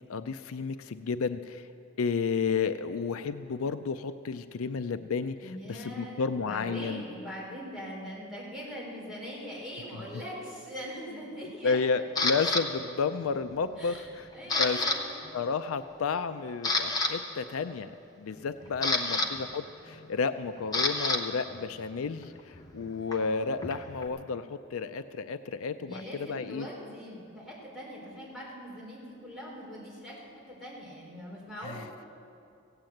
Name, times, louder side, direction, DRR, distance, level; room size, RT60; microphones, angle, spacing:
voice 1, 0.1-1.7 2.0-7.0 11.6-14.3 14.6-14.8 15.3-17.9 18.2-26.7 31.6-31.8, left 5 dB, 75° left, 11 dB, 0.4 m, -32 dB
voice 2, 5.4-11.8 13.8-14.0 14.3-14.9 18.6-19.3 25.8-31.8, equal, ahead, -7 dB, 4.0 m, -42 dB
Camera, 12.2-12.6 13.2-13.6 13.9-15.0 15.2-15.4 16.0-16.1 16.5-17.1 18.3-21.2 21.5-24.1, left 2 dB, 20° left, 0.9 m, -30 dB
16.0 x 8.8 x 7.7 m, 2.4 s
head